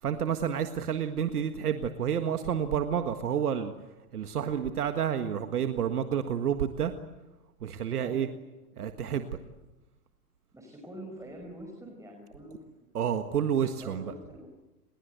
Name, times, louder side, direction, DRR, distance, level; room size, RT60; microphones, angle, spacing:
voice 1, 0.0-3.7 4.1-6.9 7.6-8.3 8.8-9.3 12.9-14.1, right 8 dB, 80° right, 8 dB, 1.7 m, -29 dB
voice 2, 10.5-12.6 13.8-14.5, right 1 dB, 5° right, 2 dB, 5.3 m, -45 dB
30.0 x 21.5 x 8.1 m, 1.1 s
hypercardioid pair, 105°, 45 cm